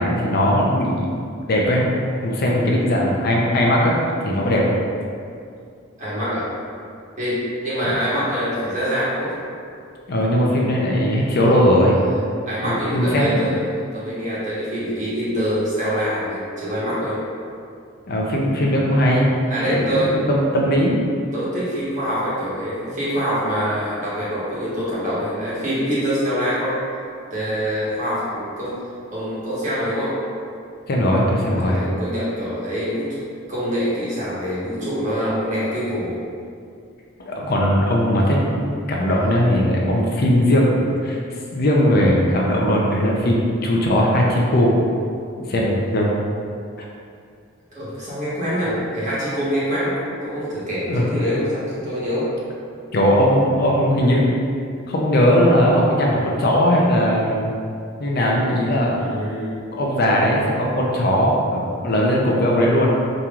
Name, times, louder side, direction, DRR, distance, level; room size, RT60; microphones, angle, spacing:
voice 1, 0.0-1.9 2.2-3.9 4.2-4.6 10.1-12.0 12.6-13.4 18.1-19.3 19.7-21.0 30.9-31.8 37.3-41.2 41.5-44.8 45.5-46.1 50.9-51.1 52.9-54.3 54.9-57.5 58.0-59.0 59.7-62.9, equal, 50° left, -2 dB, 0.5 m, -19 dB
voice 2, 2.5-2.9 4.4-4.7 6.0-6.5 7.2-9.3 11.4-11.5 12.0-17.2 19.5-20.1 21.3-26.8 27.3-28.7 29.1-30.2 31.6-33.2 33.5-36.2 39.1-39.2 47.7-52.3 59.0-59.5, equal, 35° right, -9 dB, 1.2 m, -25 dB
5.2 x 2.9 x 2.4 m, 2.4 s
head